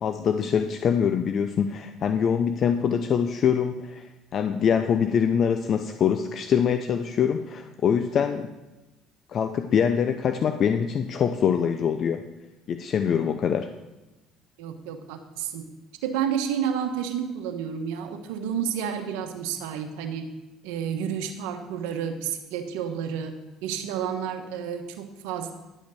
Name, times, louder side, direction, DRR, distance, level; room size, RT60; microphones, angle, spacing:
voice 1, 0.0-4.1 4.3-8.5 9.3-12.2 12.7-13.7, left 7 dB, 50° left, 8 dB, 0.6 m, -24 dB
voice 2, 14.6-15.6 16.0-20.3 20.6-23.3 23.6-25.5, right 8 dB, 85° right, 5 dB, 1.2 m, -30 dB
11.0 x 5.2 x 7.0 m, 1.0 s
supercardioid pair, 80°, 0 cm